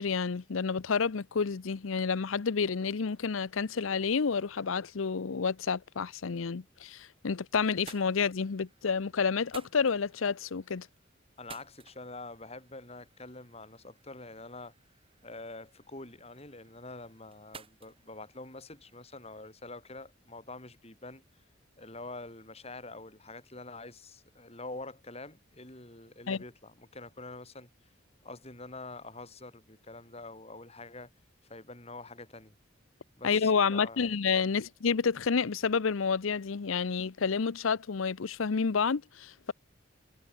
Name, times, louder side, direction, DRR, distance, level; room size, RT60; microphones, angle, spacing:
voice 1, 0.0-10.9 26.3-26.4 33.2-39.5, left 5 dB, 90° left, 0.6 m, -29 dB
sound 1, 7.2-7.3 7.6-19.3, right 5 dB, 30° right, 4.2 m, -56 dB
voice 2, 11.4-14.7 15.2-21.2 21.8-27.7 28.2-31.1 31.5-32.5 33.2-34.1, left 2 dB, 30° left, 6.4 m, -46 dB
head